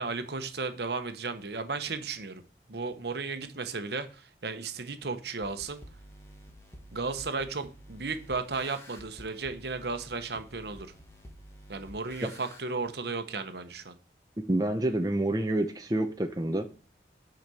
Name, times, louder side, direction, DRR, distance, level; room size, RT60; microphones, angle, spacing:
voice 1, 0.0-2.4 2.7-5.8 6.9-10.9 11.7-13.9, right 4 dB, 65° right, 9 dB, 1.0 m, -34 dB
sound 1, 5.4-12.6, equal, 15° left, 1.9 m, -50 dB
voice 2, 14.5-16.7, right 1 dB, 20° right, 5 dB, 0.7 m, -28 dB
9.3 x 5.1 x 6.9 m, 0.36 s
head